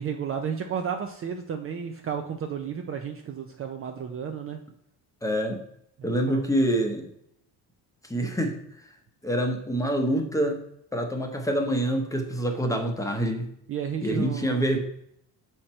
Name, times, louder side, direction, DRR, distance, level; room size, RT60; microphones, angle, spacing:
voice 1, 0.0-4.6 6.0-6.4 13.7-14.7, right 7 dB, 35° right, 5 dB, 0.4 m, -32 dB
voice 2, 5.2-5.6 6.0-7.1 8.0-8.6 9.2-10.6 10.9-13.5 14.0-14.8, right 1 dB, 10° left, 3 dB, 0.8 m, -26 dB
6.4 x 4.5 x 4.3 m, 0.73 s
cardioid pair, 130°, 41 cm